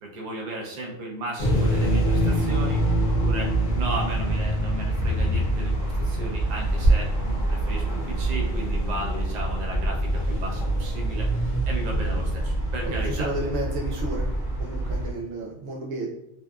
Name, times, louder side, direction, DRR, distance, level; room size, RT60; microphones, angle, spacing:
voice 1, 0.0-2.8 3.2-13.3, right 2 dB, 50° right, -1 dB, 0.5 m, -35 dB
sound 1, 1.4-15.1, right 1 dB, 45° left, 0.7 m, -25 dB
voice 2, 12.8-14.2 14.6-16.1, right 1 dB, 80° right, -2 dB, 1.0 m, -32 dB
2.6 x 2.3 x 2.3 m, 0.76 s
omnidirectional pair, 1.3 m